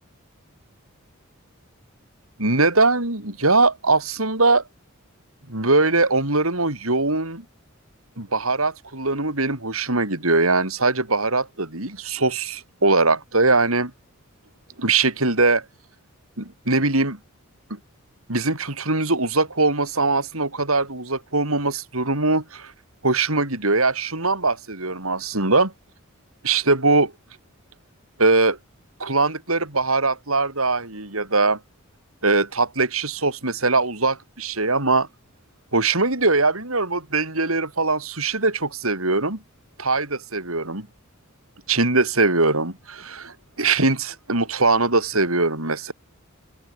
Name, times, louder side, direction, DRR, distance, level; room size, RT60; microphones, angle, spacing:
voice 1, 2.4-4.6 5.5-7.4 8.2-13.9 14.8-15.6 16.4-17.2 17.7-17.8 18.3-22.7 23.0-25.7 26.4-27.1 28.2-28.6 29.0-31.6 32.2-35.1 35.7-39.4 39.8-40.9 41.7-45.9, right 3 dB, 85° right, 6.7 m, -21 dB
open air
head